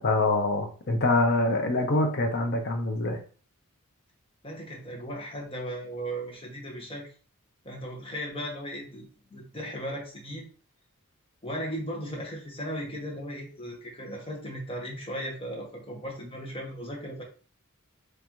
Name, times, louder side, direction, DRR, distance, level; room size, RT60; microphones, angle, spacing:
voice 1, 0.0-3.2, left 2 dB, 50° left, 3 dB, 0.8 m, -25 dB
voice 2, 4.4-7.1 7.6-9.0 9.3-10.5 11.4-17.2, equal, 25° left, -1 dB, 1.1 m, -36 dB
3.6 x 3.3 x 3.0 m, 0.39 s
head